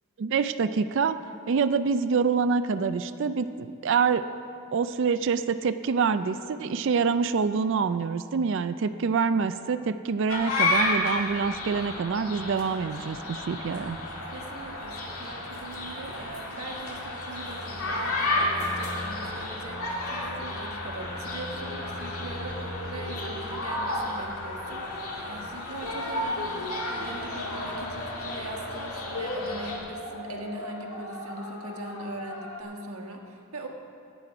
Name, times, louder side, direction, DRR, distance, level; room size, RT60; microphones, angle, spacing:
voice 1, 0.2-1.2 1.5-4.3 4.7-14.0, right 5 dB, 55° right, 11 dB, 0.4 m, -26 dB
sound 1, 10.3-29.8, left 2 dB, 85° left, 2.0 m, -32 dB
sound 2, 12.9-32.6, left 1 dB, 55° left, 1.4 m, -42 dB
voice 2, 14.3-33.7, right 2 dB, 80° right, 1 dB, 1.5 m, -41 dB
14.5 x 9.2 x 4.9 m, 2.6 s
head